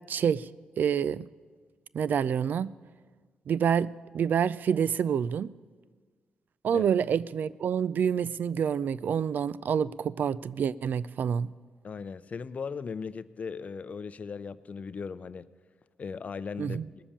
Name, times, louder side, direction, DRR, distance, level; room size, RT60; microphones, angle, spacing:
voice 1, 0.1-0.5 0.8-1.3 1.9-2.7 3.5-5.6 6.6-11.5 16.6-16.9, right 7 dB, 65° right, 0.4 m, -27 dB
voice 2, 11.8-15.5 16.0-16.8, left 5 dB, 45° left, 0.5 m, -37 dB
19.0 x 7.3 x 8.6 m
cardioid pair, 70°, 3 cm